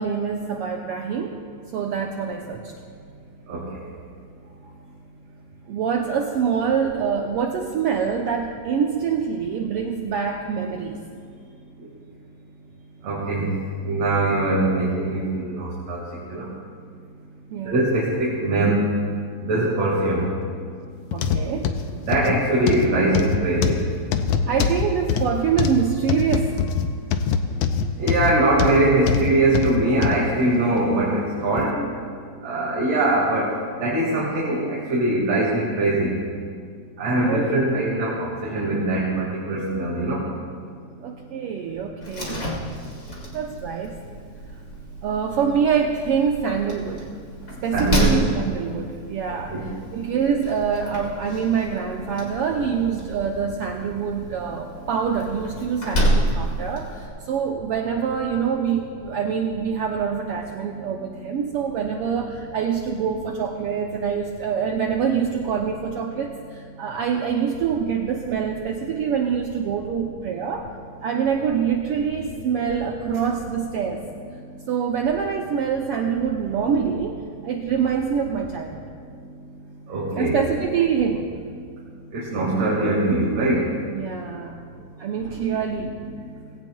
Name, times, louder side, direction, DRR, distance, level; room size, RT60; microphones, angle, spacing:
voice 1, 0.0-1.4 1.7-2.7 5.7-11.0 17.5-17.9 21.1-21.7 24.5-26.8 37.2-37.6 41.0-42.5 43.3-44.0 45.0-47.1 47.6-49.5 49.9-70.7 71.0-74.1 74.7-78.8 80.2-81.3 83.9-84.6 85.0-85.9, right 7 dB, 80° right, 2 dB, 1.3 m, -25 dB
voice 2, 3.5-3.8 13.0-13.5 13.8-16.0 16.3-16.5 17.6-18.8 19.4-20.3 21.9-23.8 28.0-31.7 32.4-33.5 33.8-36.2 37.0-40.2 47.7-48.3 49.3-49.7 79.9-80.3 82.1-83.7, right 2 dB, 60° right, -6 dB, 3.0 m, -22 dB
sound 1, 21.1-30.2 30.8-30.9 31.6-31.7, left 6 dB, 75° left, 1.6 m, -23 dB
Slam, 42.0-57.1, equal, 30° left, 2.1 m, -30 dB
18.5 x 16.5 x 2.3 m, 2.2 s
omnidirectional pair, 3.3 m